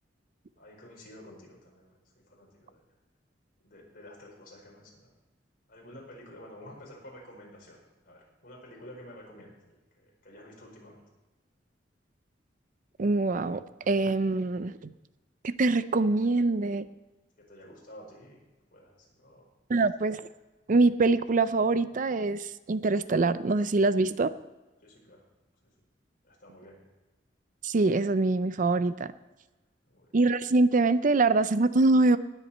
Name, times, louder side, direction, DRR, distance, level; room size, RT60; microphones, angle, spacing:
voice 1, 0.6-2.8 3.6-5.1 5.7-7.8 8.0-11.0 17.5-18.4 18.7-19.5 24.8-25.2 25.6-25.7 26.2-26.9 29.9-30.1, left 1 dB, 55° left, -1 dB, 4.9 m, -50 dB
voice 2, 13.0-14.9 15.4-16.9 19.7-20.2 20.7-24.3 27.6-29.1 30.1-32.2, right 3 dB, 45° right, 14 dB, 0.5 m, -24 dB
19.5 x 8.2 x 4.3 m, 1.1 s
head